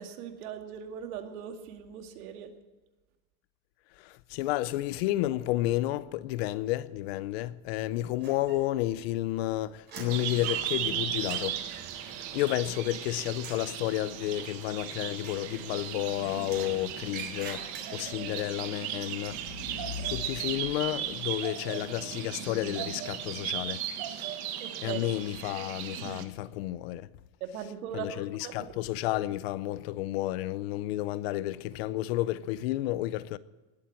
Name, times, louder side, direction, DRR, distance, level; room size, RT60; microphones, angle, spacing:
voice 1, 0.0-2.5 24.6-25.0 27.4-28.7, right 8 dB, 90° right, 2.4 m, -39 dB
voice 2, 3.9-11.6 12.1-23.9 24.8-27.1 27.9-33.4, left 15 dB, 50° left, 0.6 m, -31 dB
sound 1, 8.2-9.0 9.3-13.0 13.3-13.7 15.1-16.0 16.4-18.2, right 5 dB, 25° right, 3.9 m, -46 dB
sound 2, 10.1-26.2, right 10 dB, 40° right, 1.4 m, -36 dB
20.5 x 8.7 x 7.5 m
supercardioid pair, 175°, 42 cm